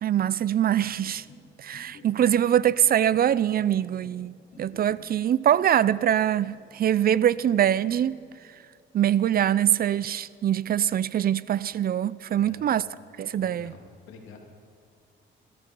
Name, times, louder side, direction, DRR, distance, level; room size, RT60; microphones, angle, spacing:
voice 1, 0.0-1.2 1.6-8.2 8.9-12.8 13.2-13.7, right 10 dB, 50° right, 0.5 m, -23 dB
sound 1, 0.8-1.4 1.7-2.3 2.7-3.3 3.6-4.2 4.5-5.1 5.4-6.1 6.4-7.0 7.3-8.0, left 3 dB, 55° left, 4.6 m, -51 dB
voice 2, 12.3-12.8 13.3-14.4, left 5 dB, 85° left, 2.9 m, -48 dB
22.0 x 14.0 x 4.6 m
cardioid pair, 90°, 20 cm